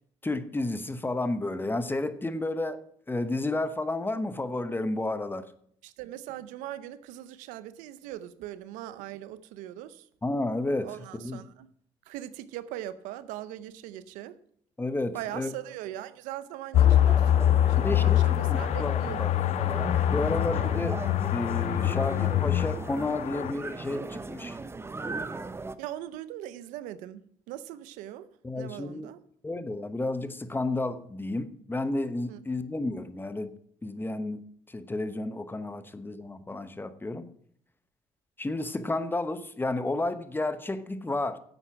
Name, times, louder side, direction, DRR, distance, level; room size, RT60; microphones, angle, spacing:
voice 1, 0.2-5.5 10.2-11.4 14.8-15.5 17.7-18.2 18.5-19.3 20.1-21.0 21.3-24.6 28.4-29.1 29.4-33.5 33.8-37.3 38.4-41.4, left 2 dB, 15° left, 1.0 m, -31 dB
voice 2, 5.8-10.1 10.8-11.7 12.1-14.4 15.1-17.4 17.7-19.4 25.8-28.3 28.5-29.2 32.3-32.4, right 13 dB, 85° right, 0.7 m, -40 dB
sound 1, 16.7-23.5, left 12 dB, 60° left, 0.5 m, -24 dB
sound 2, 16.7-25.8, right 3 dB, 20° right, 0.7 m, -38 dB
10.5 x 8.1 x 6.0 m
supercardioid pair, 75°, 13 cm